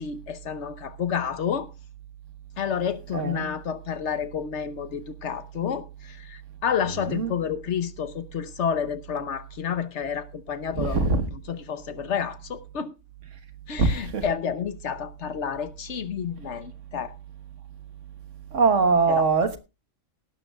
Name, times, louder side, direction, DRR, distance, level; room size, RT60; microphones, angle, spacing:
voice 1, 0.0-1.7 2.6-11.1 11.5-12.9 13.7-17.1 19.1-19.3, left 7 dB, 60° left, 1.1 m, -30 dB
voice 2, 3.1-3.5 7.1-7.3 10.7-11.3 13.8-14.3 18.5-19.6, right 4 dB, 65° right, 1.6 m, -22 dB
17.0 x 12.5 x 2.3 m
omnidirectional pair, 1.4 m